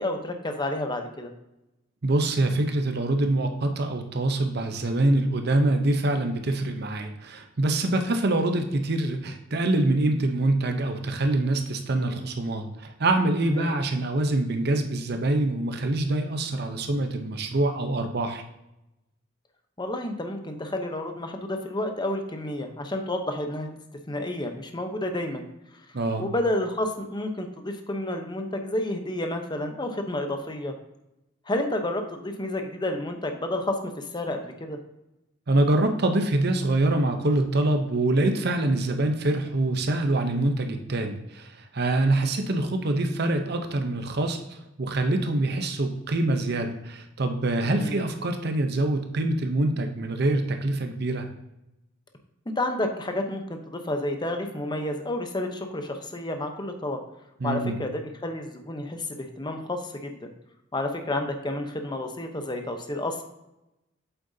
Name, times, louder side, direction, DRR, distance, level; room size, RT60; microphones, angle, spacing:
voice 1, 0.0-1.3 13.5-13.8 19.8-23.8 24.1-25.5 26.2-30.7 31.5-34.8 47.6-48.0 52.6-57.0 57.4-60.3 60.7-63.2, left 1 dB, 20° left, 5 dB, 0.8 m, -30 dB
voice 2, 2.0-18.4 25.9-26.3 35.5-51.3 57.4-57.8, right 2 dB, 55° right, 6 dB, 0.8 m, -25 dB
8.0 x 7.6 x 2.8 m, 0.90 s
head